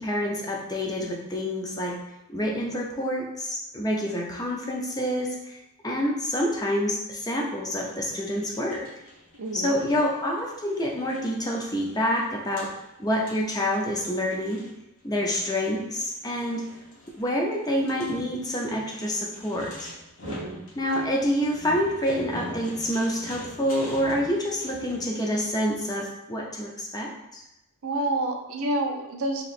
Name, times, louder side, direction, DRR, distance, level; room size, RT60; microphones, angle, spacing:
voice 1, 0.0-2.0 2.3-8.9 9.5-12.7 13.0-14.6 15.0-16.6 17.2-19.9 20.8-27.4, equal, 15° left, -1 dB, 0.6 m, -27 dB
sound 1, 7.8-25.1, left 1 dB, 65° left, 1.0 m, -44 dB
voice 2, 9.4-9.7 20.2-20.6 27.8-29.4, right 1 dB, 70° right, 4 dB, 0.5 m, -28 dB
3.0 x 2.9 x 4.2 m, 0.91 s
head